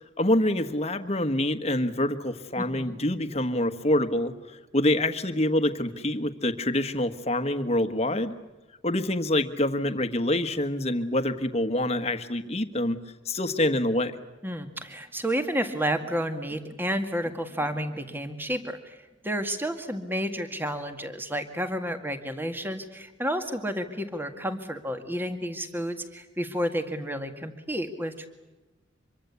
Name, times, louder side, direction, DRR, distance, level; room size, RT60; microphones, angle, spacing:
voice 1, 0.0-8.3 8.8-13.0 13.2-14.1, left 1 dB, 35° left, 10 dB, 1.5 m, -26 dB
voice 2, 2.6-3.0 14.4-28.3, equal, 10° right, 7 dB, 2.0 m, -31 dB
25.5 x 23.5 x 8.4 m, 1.1 s
head